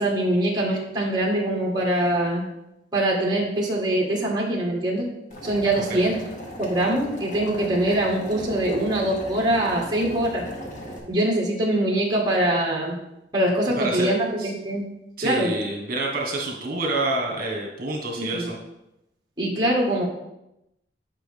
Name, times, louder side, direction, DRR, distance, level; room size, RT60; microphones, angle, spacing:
voice 1, 0.0-2.4 2.9-5.0 5.4-6.2 6.6-10.4 11.1-13.0 13.3-14.8 15.2-15.5 18.2-18.5 19.4-20.1, right 1 dB, 25° right, -2 dB, 1.5 m, -23 dB
Boiling, 5.3-11.0, equal, 45° left, 1.6 m, -38 dB
voice 2, 13.8-14.1 14.4-14.5 15.2-18.6, right 2 dB, 55° right, -1 dB, 1.5 m, -27 dB
8.8 x 5.7 x 3.5 m, 0.87 s
head